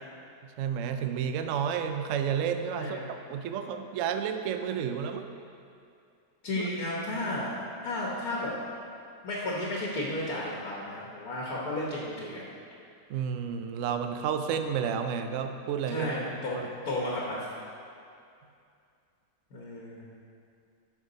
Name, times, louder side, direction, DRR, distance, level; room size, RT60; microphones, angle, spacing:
voice 1, 0.6-5.2 6.6-6.7 13.1-16.1 16.5-16.6, right 7 dB, 70° right, 7 dB, 0.7 m, -31 dB
voice 2, 2.7-3.1 6.4-7.5 7.8-8.5 9.2-12.5 15.9-17.5 19.5-20.1, left 1 dB, 60° left, -4 dB, 1.7 m, -33 dB
12.0 x 5.9 x 4.0 m, 2.4 s
omnidirectional pair, 1.8 m